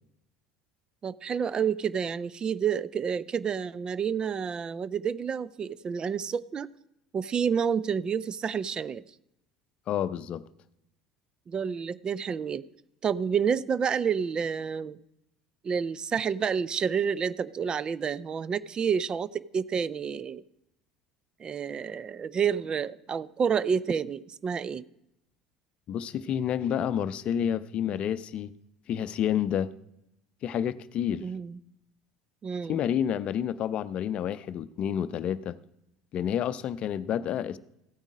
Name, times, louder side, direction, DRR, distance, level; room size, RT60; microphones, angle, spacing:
voice 1, 1.0-6.7 7.1-9.0 11.5-12.7 13.0-15.0 15.6-20.4 21.4-24.8 31.2-31.6 32.4-32.8, right 7 dB, 35° right, 0.5 m, -29 dB
voice 2, 9.9-10.4 25.9-28.5 28.9-29.7 30.4-31.3 32.7-35.6 36.1-37.6, left 9 dB, 50° left, 0.6 m, -29 dB
15.5 x 9.0 x 5.0 m
hypercardioid pair, 70°, 3 cm